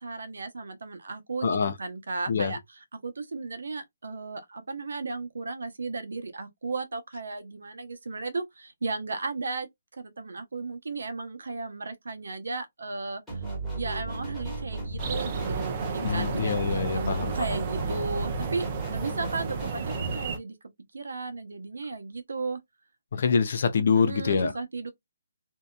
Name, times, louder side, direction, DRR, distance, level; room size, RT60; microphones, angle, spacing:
voice 1, 0.0-2.6 2.9-9.7 10.0-13.4 13.7-16.5 16.9-20.6 20.9-22.6 23.9-24.9, right 3 dB, 80° right, 0.7 m, -35 dB
voice 2, 1.4-1.8 2.3-2.6 16.0-17.6 23.1-24.5, left 5 dB, 45° left, 0.5 m, -25 dB
sound 1, 13.3-20.1, right 3 dB, 5° left, 1.0 m, -35 dB
sound 2, 15.0-20.4, right 5 dB, 25° right, 0.4 m, -33 dB
2.7 x 2.2 x 2.2 m
hypercardioid pair, 170°, 0 cm